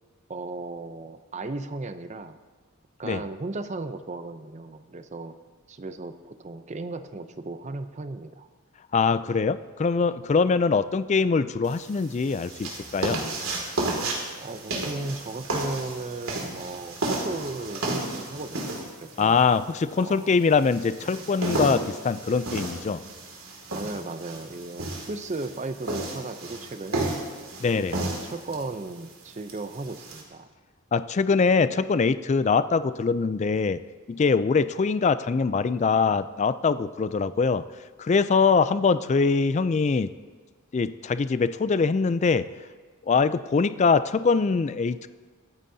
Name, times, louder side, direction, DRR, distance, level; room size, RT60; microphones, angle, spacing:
voice 1, 0.3-2.4 3.0-5.3 5.7-8.5 14.4-19.4 20.0-20.4 23.7-27.2 27.8-30.5, right 2 dB, 35° right, 10 dB, 0.5 m, -36 dB
voice 2, 8.9-13.2 19.2-23.0 27.6-28.0 30.9-33.8 34.1-37.6 38.0-40.1 40.7-42.5 43.0-45.1, left 5 dB, 30° left, 14 dB, 0.3 m, -23 dB
sound 1, 11.6-30.2, right 2 dB, 75° right, 2.3 m, -33 dB
24.0 x 9.0 x 2.7 m, 1.5 s
head